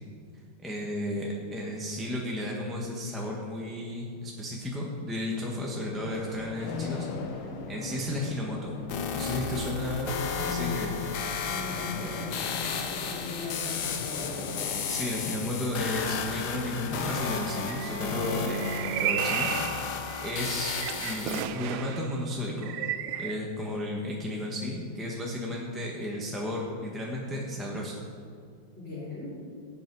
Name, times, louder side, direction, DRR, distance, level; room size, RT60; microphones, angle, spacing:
voice 1, 0.6-8.7 9.1-10.1 10.5-11.1 11.9-12.2 14.9-19.9 20.2-22.7 23.2-28.0, left 1 dB, ahead, -3 dB, 1.0 m, -33 dB
sound 1, 5.9-17.1, left 4 dB, 80° left, 1.9 m, -40 dB
sound 2, 8.9-21.4, left 6 dB, 60° left, 1.3 m, -33 dB
voice 2, 10.3-11.0 11.4-14.0 18.1-18.4 28.7-29.3, left 3 dB, 35° left, -7 dB, 3.3 m, -39 dB
sound 3, 17.7-22.1 22.6-23.3, right 10 dB, 80° right, 1.4 m, -34 dB
17.0 x 7.8 x 4.8 m, 2.4 s
omnidirectional pair, 2.3 m